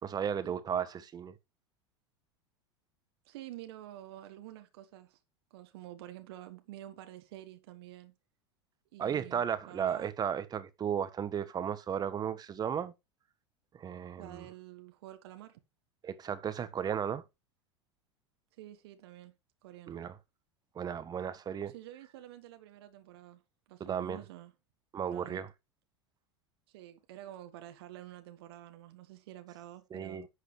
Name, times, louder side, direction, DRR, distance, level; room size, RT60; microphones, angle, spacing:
voice 1, 0.0-1.3 9.0-12.9 13.7-14.5 16.0-17.2 19.9-20.2 20.7-21.7 23.8-24.2 24.9-25.5 29.9-30.3, right 8 dB, 25° right, 1.3 m, -34 dB
voice 2, 3.2-5.2 5.5-8.1 8.9-10.1 14.2-15.6 18.6-19.3 19.6-20.0 21.7-23.4 23.7-24.5 25.1-25.4 26.7-30.2, right 14 dB, 60° right, 1.4 m, -49 dB
10.5 x 8.2 x 3.2 m
figure-of-eight pair, 80°, 15 cm